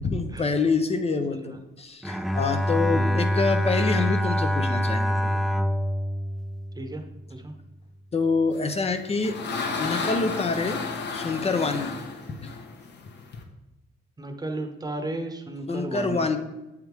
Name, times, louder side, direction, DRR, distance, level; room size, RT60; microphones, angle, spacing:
voice 1, 0.0-5.4 8.1-9.4 9.8-10.8 11.1-12.0 15.7-16.4, left 4 dB, 30° left, 7 dB, 0.7 m, -26 dB
Bowed string instrument, 2.0-7.3, equal, ahead, 0.4 m, -25 dB
sound 1, 8.7-13.4, left 4 dB, 60° left, 1.1 m, -32 dB
voice 2, 14.2-16.2, right 2 dB, 20° right, 5 dB, 1.0 m, -34 dB
7.8 x 3.6 x 4.6 m, 0.97 s
cardioid pair, 90°, 20 cm